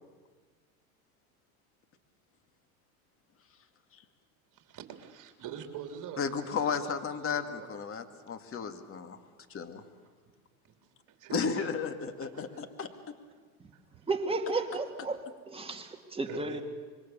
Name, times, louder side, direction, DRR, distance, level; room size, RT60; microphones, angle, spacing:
voice 1, 4.5-7.7 11.2-11.7 12.2-12.4 12.8-12.9 13.7-13.8 16.3-16.6, right 8 dB, 45° right, 6 dB, 3.4 m, -44 dB
voice 2, 6.2-9.2 9.5-9.8 11.3-12.9, left 6 dB, 30° left, 8 dB, 2.3 m, -34 dB
voice 3, 14.1-16.6, right 3 dB, 10° right, 3 dB, 2.4 m, -33 dB
25.5 x 22.5 x 7.0 m, 1.5 s
hypercardioid pair, 100°, 44 cm